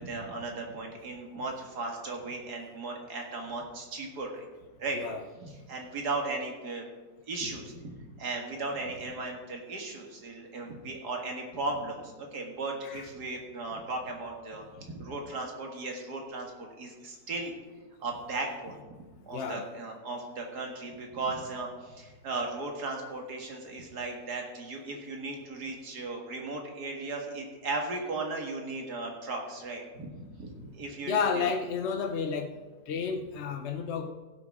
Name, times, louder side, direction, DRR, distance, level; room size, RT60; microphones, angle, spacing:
voice 1, 0.0-4.5 4.8-5.0 5.4-6.8 7.3-17.6 18.0-18.9 19.3-30.1 30.4-31.5, right 3 dB, 60° right, 1 dB, 2.3 m, -36 dB
voice 2, 19.3-19.7 31.0-32.5 32.9-34.1, left 6 dB, 55° left, 6 dB, 0.8 m, -31 dB
16.5 x 6.1 x 4.8 m, 1.3 s
omnidirectional pair, 1.9 m